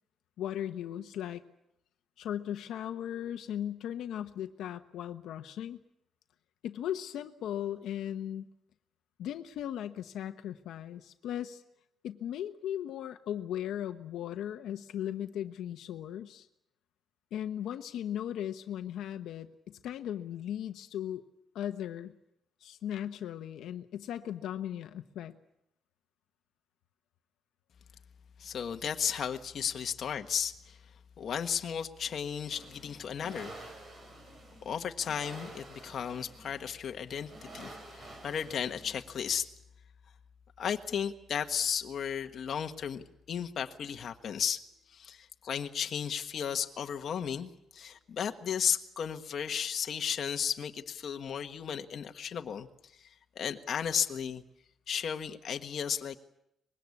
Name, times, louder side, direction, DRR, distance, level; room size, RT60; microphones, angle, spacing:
voice 1, 0.4-1.4 2.2-5.8 6.6-8.5 9.2-11.6 12.0-16.5 17.3-21.2 21.5-22.1 22.6-25.3, left 10 dB, 80° left, 7 dB, 1.0 m, -37 dB
voice 2, 28.4-30.8 31.2-33.6 34.6-39.5 40.6-44.6 44.9-52.7 53.0-53.1 53.3-54.4 54.9-56.2, left 8 dB, 45° left, 6 dB, 1.4 m, -34 dB
sound 1, 32.5-39.3, right 2 dB, 30° right, 4.6 m, -50 dB
24.5 x 21.5 x 8.5 m, 0.83 s
cardioid pair, 170°, 0 cm